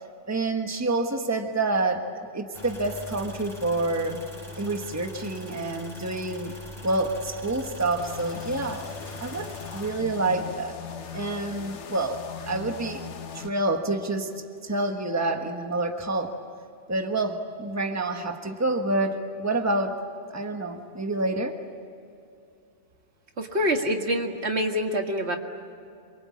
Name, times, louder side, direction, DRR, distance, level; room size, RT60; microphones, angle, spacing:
voice 1, 0.3-4.2 4.6-6.5 6.8-8.9 9.2-10.7 11.1-13.0 13.3-14.3 14.6-16.4 16.9-20.0 20.3-21.6, right 2 dB, 15° right, 4 dB, 1.4 m, -28 dB
sound 1, 2.5-9.9, left 2 dB, ahead, 4.7 m, -42 dB
sound 2, 8.0-13.5, left 7 dB, 75° left, 1.4 m, -39 dB
voice 2, 23.4-25.4, equal, 65° right, 3 dB, 2.2 m, -26 dB
27.5 x 24.0 x 8.6 m, 2.6 s
omnidirectional pair, 1.2 m